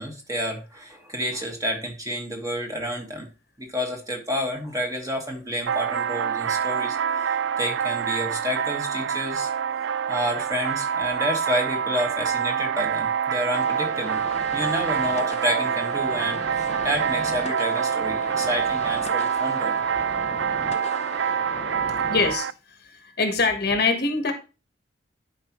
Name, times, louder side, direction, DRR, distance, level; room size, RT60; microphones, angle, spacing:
voice 1, 0.0-3.3 3.6-7.3 7.6-9.5 10.1-14.2 14.5-19.7, equal, 20° right, 1 dB, 1.7 m, -29 dB
sound 1, 5.7-22.5, right 7 dB, 70° right, 0.3 m, -26 dB
sound 2, 13.5-22.3, left 3 dB, 35° left, 0.6 m, -38 dB
voice 2, 22.1-24.3, left 4 dB, 60° left, 6 dB, 1.3 m, -24 dB
11.0 x 4.8 x 3.0 m, 0.32 s
head